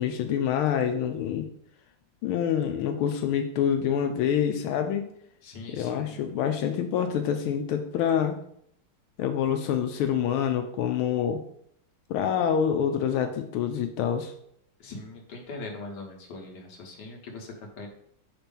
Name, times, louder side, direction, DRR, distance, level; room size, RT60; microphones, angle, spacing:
voice 1, 0.0-1.5 2.2-5.1 5.7-8.4 9.2-11.4 12.1-14.3, left 8 dB, 85° left, 6 dB, 1.4 m, -26 dB
voice 2, 5.4-6.2 14.8-17.9, left 2 dB, 60° left, 0 dB, 1.7 m, -41 dB
6.1 x 2.9 x 5.2 m, 0.69 s
omnidirectional pair, 2.3 m